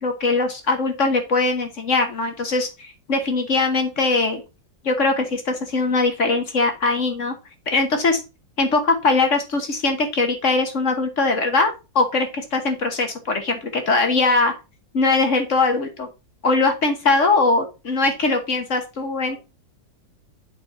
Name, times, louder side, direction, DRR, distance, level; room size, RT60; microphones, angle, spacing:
voice 1, 0.0-4.4 4.8-7.3 7.7-8.2 8.6-14.5 14.9-16.1 16.4-19.4, left 3 dB, 45° left, 6 dB, 1.4 m, -21 dB
8.1 x 4.2 x 4.2 m, 0.28 s
omnidirectional pair, 2.0 m